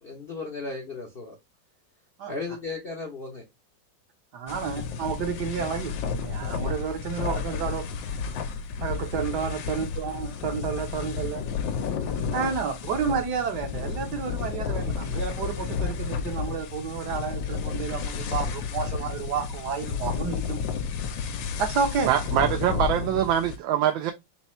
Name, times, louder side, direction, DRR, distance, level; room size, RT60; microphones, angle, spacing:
voice 1, 0.0-1.3 2.3-3.4, left 3 dB, 50° left, 0.7 m, -35 dB
voice 2, 4.3-7.9 8.8-11.4 12.3-20.6 21.6-22.1, right 6 dB, 65° right, 1.3 m, -30 dB
sound 1, 4.5-23.6, left 6 dB, 75° left, 1.3 m, -31 dB
voice 3, 22.1-24.1, right 10 dB, 80° right, 1.3 m, -24 dB
4.1 x 2.3 x 4.1 m
omnidirectional pair, 2.1 m